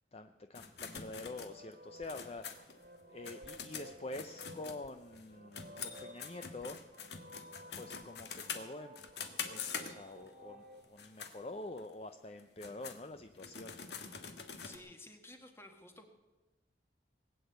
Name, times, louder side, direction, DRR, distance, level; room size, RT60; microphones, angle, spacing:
voice 1, 0.1-2.8 3.1-6.8 7.7-9.0 9.4-13.8, left 2 dB, 35° left, 8 dB, 0.6 m, -47 dB
sound 1, 0.5-5.2 5.5-10.3 10.8-11.3 11.8-11.9 12.4-14.8, left 6 dB, 75° left, 1.6 m, -45 dB
sound 2, 0.8-10.8, equal, 55° right, 1.6 m, -55 dB
voice 2, 14.6-16.1, left 1 dB, 15° left, 5 dB, 1.8 m, -53 dB
20.0 x 8.7 x 8.0 m, 1.1 s
head